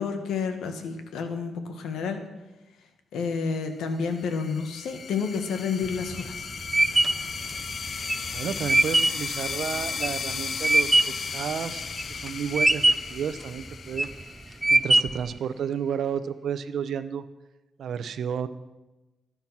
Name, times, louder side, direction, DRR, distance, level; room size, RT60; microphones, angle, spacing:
voice 1, 0.0-2.2 3.1-6.5, left 5 dB, 80° left, 7 dB, 1.7 m, -30 dB
sound 1, 4.0-15.3, left 6 dB, 50° left, 0.6 m, -35 dB
sound 2, 5.8-11.3 11.7-12.3 12.6-13.2 13.7-14.2 14.6-15.3, right 2 dB, 15° right, 0.4 m, -22 dB
voice 2, 8.3-11.8 12.1-12.8 13.1-14.1 14.5-17.2 17.8-18.5, right 8 dB, 65° right, 12 dB, 0.9 m, -32 dB
19.5 x 9.0 x 5.9 m, 1.1 s
cardioid pair, 100°, 0 cm